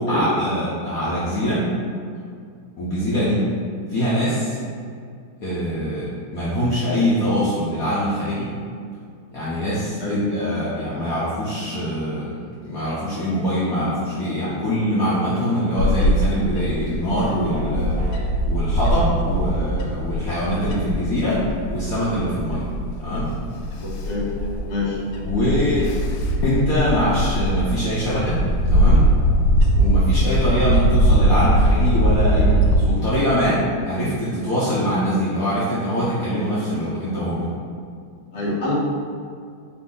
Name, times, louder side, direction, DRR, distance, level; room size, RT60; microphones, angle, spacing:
voice 1, 0.0-1.7 2.8-3.5 3.9-4.6 5.4-8.5 9.3-12.4 12.6-18.0 18.5-22.7 23.0-23.3 25.2-25.9 26.4-29.1 29.8-37.5 38.4-38.5, equal, 65° left, -9 dB, 0.9 m, -23 dB
Bird / Wind, 15.8-32.8, right 1 dB, 85° left, 1.4 m, -21 dB
sound 1, 17.5-18.2, right 2 dB, 75° right, 1.9 m, -35 dB
voice 2, 23.8-24.2 24.7-25.0 38.3-38.7, left 2 dB, 40° left, -8 dB, 0.6 m, -26 dB
4.3 x 2.6 x 3.7 m, 2.2 s
omnidirectional pair, 2.3 m